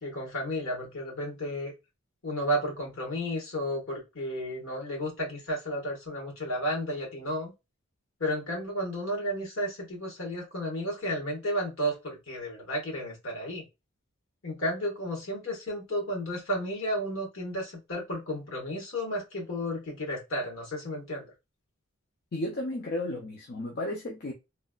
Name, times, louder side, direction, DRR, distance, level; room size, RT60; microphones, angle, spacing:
voice 1, 0.0-1.7 2.2-7.5 8.2-13.7 14.4-21.3, equal, 65° left, 1.4 m, -32 dB
voice 2, 22.3-24.3, left 1 dB, 45° left, 0.4 m, -33 dB
3.1 x 2.2 x 2.4 m
head